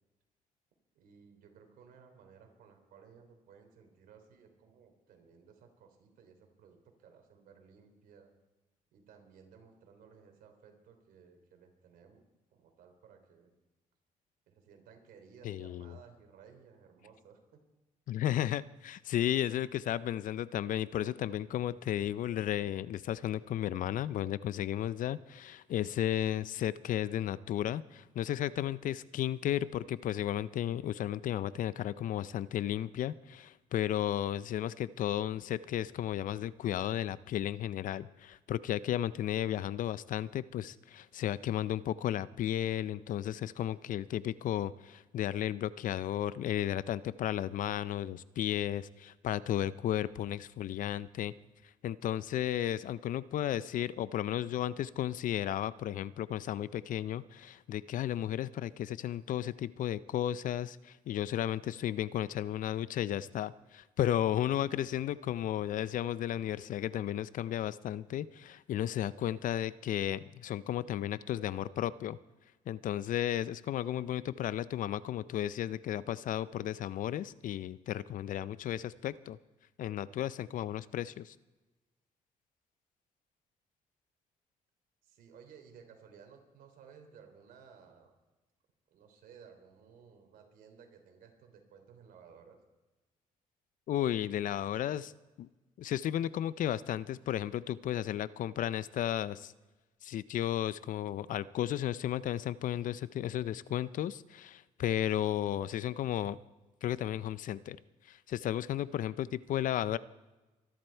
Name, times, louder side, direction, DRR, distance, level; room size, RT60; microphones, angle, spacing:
voice 1, 0.9-8.3 8.9-13.5 14.5-17.6 71.3-71.7 75.7-76.0 85.0-88.1 88.9-92.6, right 6 dB, 80° right, 5 dB, 3.2 m, -58 dB
voice 2, 15.4-16.0 18.1-51.3 51.8-72.2 72.7-79.4 79.8-81.3 93.9-95.1 95.4-95.5 95.8-99.5 100.0-106.4 106.8-107.8 108.1-110.0, left 11 dB, 65° left, 18 dB, 0.5 m, -34 dB
24.0 x 11.0 x 4.5 m, 1.1 s
cardioid pair, 85°, 15 cm